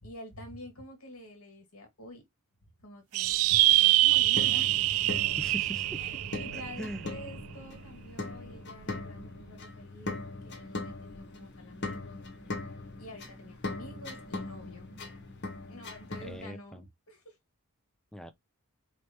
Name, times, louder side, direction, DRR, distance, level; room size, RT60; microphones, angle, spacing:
voice 1, 0.0-2.2 2.8-5.2 6.0-12.3 13.0-15.0 15.7-17.4, left 1 dB, 80° left, 2.1 m, -48 dB
sound 1, 3.1-7.9, right 18 dB, 70° right, 0.3 m, -25 dB
sound 2, 4.1-16.4, left 2 dB, 50° left, 1.3 m, -40 dB
voice 2, 5.4-6.2 6.5-7.1 16.2-16.9 18.1-18.3, equal, 5° left, 0.5 m, -41 dB
4.7 x 3.2 x 2.9 m
head